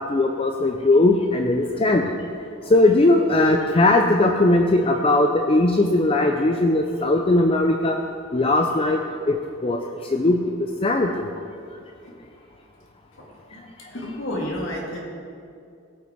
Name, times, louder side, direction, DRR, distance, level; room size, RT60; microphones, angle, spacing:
voice 1, 0.0-2.2 2.7-8.0 8.3-9.0 9.3-9.8 10.1-10.5 10.8-11.3, left 2 dB, 25° left, 3 dB, 0.5 m, -19 dB
voice 2, 13.9-15.0, left 1 dB, 60° left, -3 dB, 2.3 m, -30 dB
17.5 x 5.9 x 4.5 m, 2.4 s
head